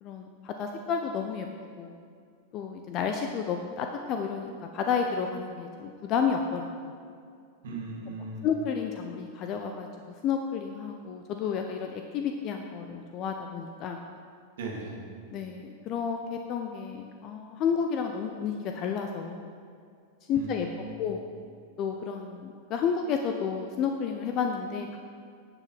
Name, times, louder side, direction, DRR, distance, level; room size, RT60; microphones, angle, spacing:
voice 1, 0.0-1.5 1.8-2.0 2.5-6.9 8.4-9.9 10.2-14.0 15.3-19.5 20.3-20.7 21.0-21.2 21.8-25.0, left 6 dB, 35° left, 4 dB, 0.7 m, -31 dB
voice 2, 7.6-8.5 14.6-15.0 20.3-21.2, right 3 dB, 60° right, -3 dB, 2.8 m, -38 dB
11.5 x 7.5 x 5.9 m, 2.3 s
figure-of-eight pair, 90°, 0 cm